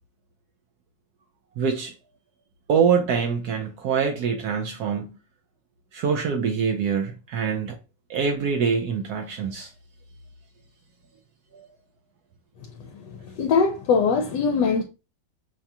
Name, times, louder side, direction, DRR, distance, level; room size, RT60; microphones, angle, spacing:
voice 1, 1.6-1.9 2.7-5.1 5.9-7.8 8.1-9.7 11.5-11.7, right 6 dB, 70° right, 0.9 m, -24 dB
voice 2, 12.8-14.8, left 5 dB, 70° left, 1.1 m, -22 dB
5.6 x 2.3 x 2.7 m
omnidirectional pair, 2.1 m